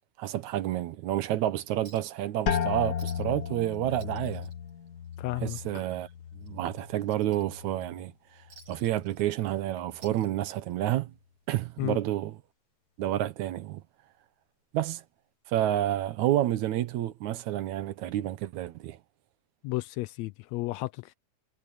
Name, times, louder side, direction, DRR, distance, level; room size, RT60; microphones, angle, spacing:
voice 1, 0.2-4.5 5.4-6.1 6.3-8.1 8.7-11.1 11.5-12.4 13.0-13.8 14.7-15.0 15.5-19.0, right 13 dB, 80° right, 2.3 m, -29 dB
Chink clink, 1.9-2.2 2.5-2.6 3.0-3.4 3.7-5.4 5.8-6.0 6.4-7.8 8.5-9.6 9.9-10.8 11.9-12.0, right 3 dB, 55° right, 5.2 m, -56 dB
sound 1, 2.5-8.1 8.4-9.1 9.7-10.1, left 7 dB, 45° left, 1.3 m, -35 dB
voice 2, 5.2-5.6 11.8-12.0 19.6-21.1, left 20 dB, 80° left, 1.7 m, -33 dB
omnidirectional pair, 3.3 m